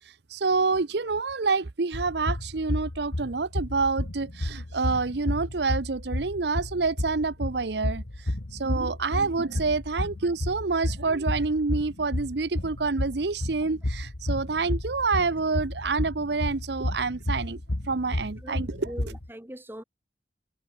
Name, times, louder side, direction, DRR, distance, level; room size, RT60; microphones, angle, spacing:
voice 1, 0.3-8.0 8.5-17.6 17.9-19.1, right 4 dB, 70° right, 0.8 m, -27 dB
sound 1, 1.9-19.3, left 1 dB, 80° left, 1.8 m, -32 dB
voice 2, 18.4-19.8, equal, 10° right, 2.6 m, -42 dB
head